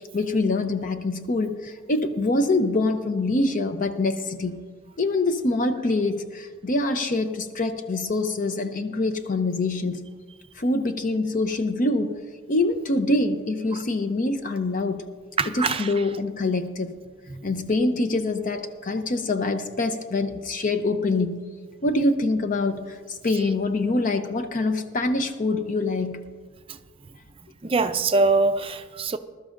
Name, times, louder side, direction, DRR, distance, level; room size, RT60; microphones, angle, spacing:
voice 1, 0.1-4.6 5.0-10.0 10.6-12.2 12.5-15.1 15.5-16.9 17.4-21.4 21.8-26.2, left 2 dB, 40° left, 0.6 m, -25 dB
voice 2, 15.4-16.0 17.3-17.4 26.7-26.8 27.6-29.2, right 3 dB, 25° right, 0.4 m, -23 dB
20.0 x 12.5 x 2.5 m
head